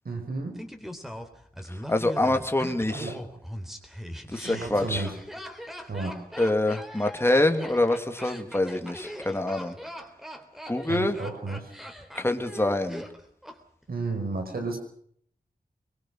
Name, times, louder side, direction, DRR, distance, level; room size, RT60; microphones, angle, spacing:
voice 1, 0.0-0.6 2.9-3.2 4.4-5.1 5.9-6.2 10.9-11.7 13.9-14.8, right 3 dB, 80° right, 4 dB, 5.0 m, -32 dB
Laughter, 0.6-13.6 13.8-13.9, equal, ahead, 3.6 m, -41 dB
voice 2, 1.7-3.1 4.3-5.1 6.4-9.7 10.7-11.2 12.1-13.0, left 1 dB, 15° left, 6 dB, 2.6 m, -25 dB
24.0 x 21.0 x 6.3 m, 0.64 s
wide cardioid pair, 70°, 15 cm